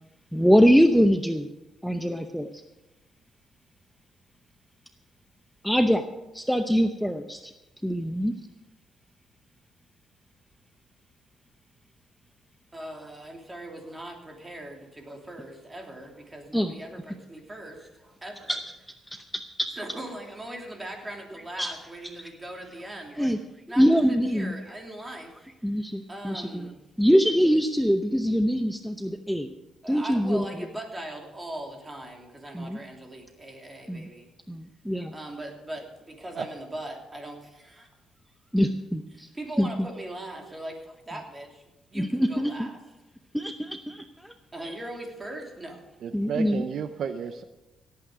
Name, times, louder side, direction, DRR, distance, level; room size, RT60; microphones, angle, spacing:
voice 1, 0.3-1.5 1.8-2.5 5.6-6.0 6.3-7.5 7.8-8.3 16.5-16.7 18.5-18.6 19.1-19.7 21.6-21.7 23.2-23.4 23.8-24.5 25.6-26.7 27.0-29.5 29.9-30.4 32.5-32.8 33.9-34.1 34.5-35.1 38.5-39.3 39.6-39.7 41.9-42.7 43.3-44.3 44.6-44.7 46.1-46.6, equal, ahead, 7 dB, 0.7 m, -23 dB
voice 2, 12.7-18.6 19.8-23.4 23.7-25.3 26.1-26.8 29.8-34.3 35.1-37.9 39.1-42.8 44.5-45.8, right 1 dB, 20° right, 2 dB, 3.0 m, -40 dB
voice 3, 46.0-47.4, right 7 dB, 65° right, 10 dB, 0.6 m, -32 dB
17.5 x 8.7 x 5.0 m, 1.0 s
cardioid pair, 90°, 0 cm